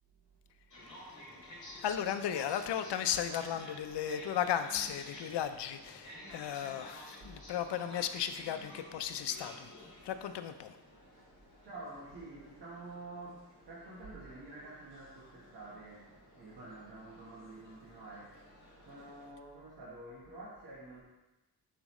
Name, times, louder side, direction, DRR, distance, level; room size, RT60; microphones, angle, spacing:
sound 1, 0.7-19.3, left 1 dB, 45° left, 2.4 m, -53 dB
voice 1, 1.8-9.7 10.0-10.8, left 9 dB, 80° left, 9 dB, 0.5 m, -35 dB
voice 2, 11.6-21.0, right 2 dB, 70° right, -6 dB, 1.3 m, -49 dB
7.3 x 5.1 x 3.1 m, 1.0 s
wide cardioid pair, 135°, 41 cm